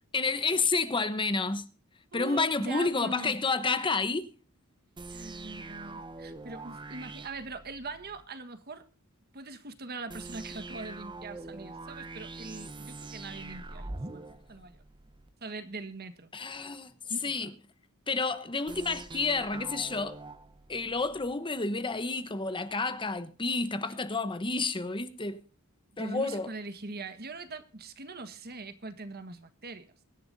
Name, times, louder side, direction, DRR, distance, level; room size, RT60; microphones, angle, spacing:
voice 1, 0.1-1.7 2.1-4.3 16.3-16.9 17.2-17.5 18.1-20.2 20.7-25.4 26.0-26.5, left 3 dB, 25° left, 0.9 m, -30 dB
voice 2, 2.1-3.4 5.1-8.9 9.3-14.8 15.4-16.3 17.1-17.5 25.9-29.9, right 3 dB, 50° right, 1.5 m, -42 dB
sound 1, 5.0-8.2 10.1-15.3 18.7-21.3, right 2 dB, 20° right, 0.9 m, -44 dB
24.0 x 11.0 x 2.7 m
head